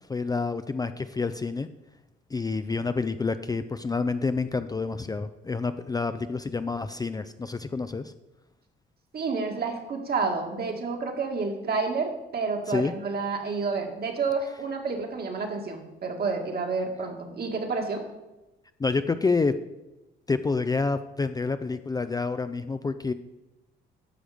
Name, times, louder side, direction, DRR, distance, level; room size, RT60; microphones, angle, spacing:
voice 1, 0.1-1.7 2.3-8.1 12.7-12.9 18.8-19.6 20.3-23.1, left 4 dB, 20° left, 10 dB, 0.4 m, -28 dB
voice 2, 9.1-18.0, right 4 dB, 50° right, 3 dB, 1.8 m, -29 dB
10.0 x 6.3 x 5.0 m, 1.0 s
cardioid pair, 90°, 20 cm